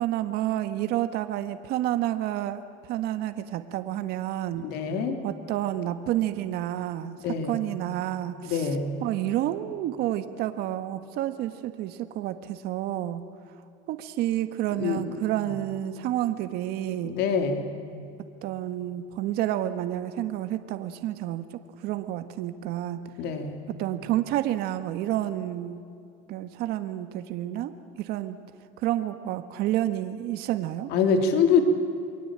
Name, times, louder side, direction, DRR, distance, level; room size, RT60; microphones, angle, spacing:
voice 1, 0.0-2.6 2.9-4.6 5.2-7.2 7.5-8.7 9.0-13.2 13.9-17.1 18.4-21.4 21.8-23.0 23.8-25.8 26.3-28.4 28.8-30.9, right 13 dB, 65° right, 10 dB, 1.5 m, -29 dB
voice 2, 4.6-5.2 7.2-7.6 8.4-8.9 14.8-15.0 15.5-15.6 17.0-17.7 23.2-23.6 30.9-31.6, left 6 dB, 65° left, 6 dB, 3.0 m, -25 dB
28.5 x 22.0 x 8.9 m, 2.5 s
cardioid pair, 125°, 18 cm